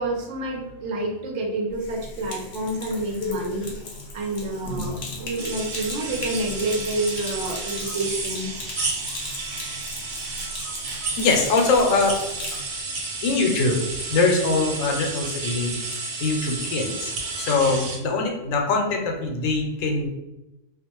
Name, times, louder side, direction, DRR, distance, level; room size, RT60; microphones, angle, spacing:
voice 1, 0.0-3.7 4.1-8.5, right 2 dB, 70° right, 0 dB, 0.9 m, -28 dB
Sink (filling or washing), 1.7-12.6, left 2 dB, 55° left, 0.6 m, -37 dB
sound 1, 5.4-18.0, right 3 dB, 85° right, 1.1 m, -32 dB
voice 2, 11.2-12.2 13.2-13.8 14.1-15.8 16.2-17.1 17.4-20.1, left 3 dB, 80° left, 2 dB, 1.0 m, -22 dB
2.4 x 2.1 x 2.9 m, 0.94 s
omnidirectional pair, 1.4 m